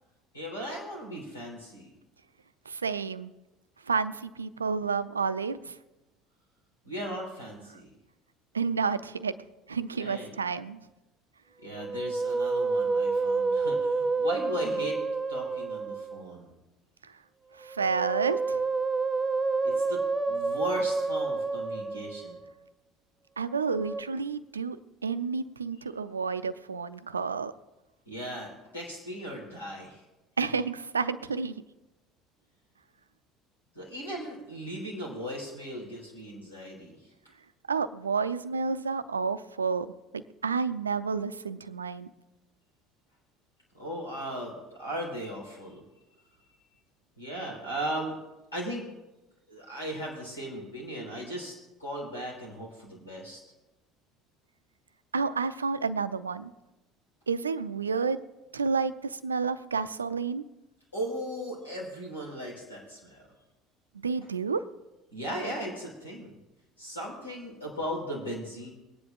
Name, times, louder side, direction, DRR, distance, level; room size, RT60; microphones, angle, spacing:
voice 1, 0.3-1.9 6.8-7.9 10.0-10.3 11.6-15.0 15.3-16.5 19.6-22.4 28.0-30.0 33.7-37.0 43.8-45.8 47.2-48.2 48.5-48.8 49.5-51.5 51.8-53.4 60.9-63.3 65.1-66.4 66.8-68.7, equal, 85° left, -4 dB, 4.3 m, -37 dB
voice 2, 2.7-3.3 3.9-5.8 8.5-9.3 9.7-10.8 17.0-17.1 17.6-18.6 23.4-27.5 30.4-31.5 37.7-42.1 55.1-56.5 57.3-58.2 58.5-60.4 64.0-64.6, right 5 dB, 80° right, 13 dB, 0.4 m, -30 dB
Musical instrument, 11.7-16.3 17.6-22.5 23.6-24.0, right 4 dB, 15° right, 0.5 m, -29 dB
23.0 x 9.8 x 2.6 m, 1.0 s
figure-of-eight pair, 60°, 0 cm